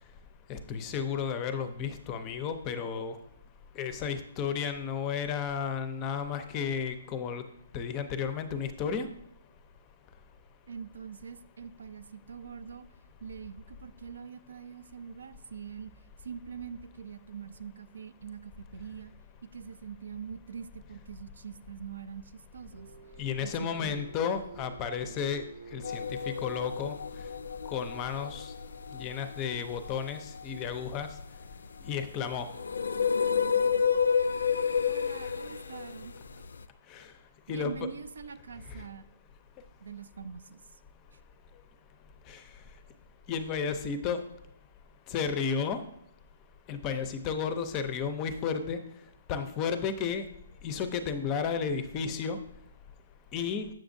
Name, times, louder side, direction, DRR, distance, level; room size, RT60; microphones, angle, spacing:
voice 1, 0.5-3.1 3.8-7.4 7.7-9.1 23.2-25.4 25.7-27.0 27.7-28.5 28.9-31.1 31.9-32.5 36.9-37.1 37.5-37.7 38.7-38.8 42.3-42.4 43.3-44.2 45.1-45.8 46.7-48.8 49.3-50.2 50.6-52.4 53.3-53.7, left 6 dB, 25° left, 10 dB, 0.5 m, -32 dB
voice 2, 10.7-12.9 13.2-15.9 16.2-19.1 19.4-22.9 23.4-24.0 33.8-34.3 34.9-36.1 37.5-39.1 39.8-40.6, right 7 dB, 80° right, 11 dB, 0.4 m, -43 dB
sound 1, 22.7-27.9, right 4 dB, 50° right, 0.7 m, -51 dB
sound 2, 25.8-36.6, left 6 dB, 85° left, 0.3 m, -31 dB
7.4 x 6.0 x 2.6 m, 0.74 s
hypercardioid pair, 160°, 0 cm